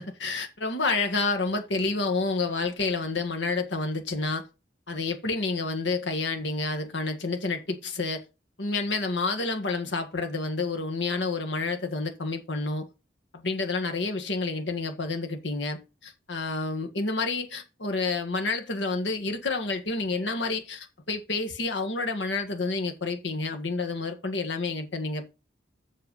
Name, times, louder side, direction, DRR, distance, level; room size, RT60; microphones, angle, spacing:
voice 1, 0.0-4.4 4.9-8.2 8.6-12.9 13.3-25.2, left 3 dB, 85° left, 1.8 m, -29 dB
7.9 x 6.7 x 5.5 m
head